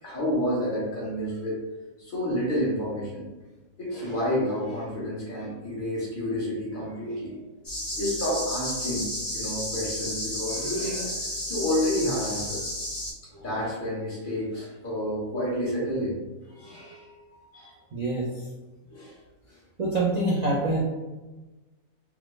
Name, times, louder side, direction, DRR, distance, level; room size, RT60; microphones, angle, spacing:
voice 1, 0.0-1.6 2.0-3.3 3.8-7.4 8.0-12.6 13.3-16.2 16.5-17.7 18.9-19.2, equal, 40° left, -6 dB, 1.1 m, -30 dB
sound 1, 7.6-13.1, left 1 dB, 20° left, 0.5 m, -32 dB
voice 2, 17.9-18.5 19.8-20.8, right 2 dB, 80° right, -6 dB, 0.3 m, -25 dB
3.5 x 2.0 x 3.0 m, 1.1 s
omnidirectional pair, 1.5 m